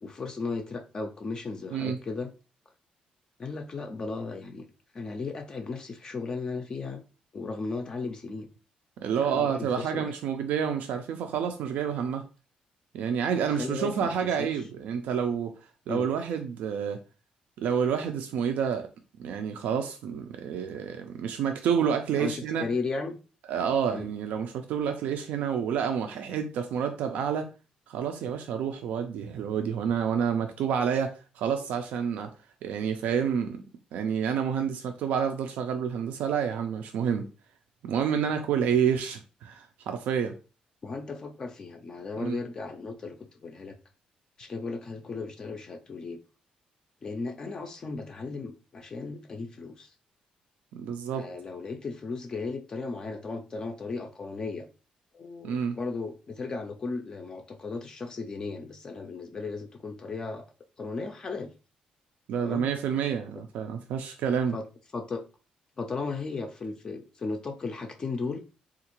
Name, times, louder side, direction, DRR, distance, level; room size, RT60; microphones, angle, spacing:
voice 1, 0.0-2.3 3.4-4.7 4.9-7.0 7.3-8.5 9.2-10.1 13.5-14.1 14.4-14.6 15.9-16.1 22.1-23.2 23.9-24.1 40.8-43.2 43.4-43.7 44.4-46.2 47.0-49.9 51.1-54.7 55.1-60.5 60.8-61.5 62.4-62.7 64.5-64.7 64.9-65.2 65.8-68.4, left 4 dB, 30° left, 0.3 m, -35 dB
voice 2, 9.0-12.2 12.9-15.5 15.9-17.0 17.6-18.9 19.2-22.7 23.5-27.5 27.9-32.3 32.6-33.6 33.9-37.3 37.8-40.3 42.2-42.4 50.7-51.3 55.4-55.8 62.3-64.6, right 7 dB, 85° right, 0.4 m, -29 dB
3.6 x 2.4 x 2.9 m
cardioid pair, 160°, 3 cm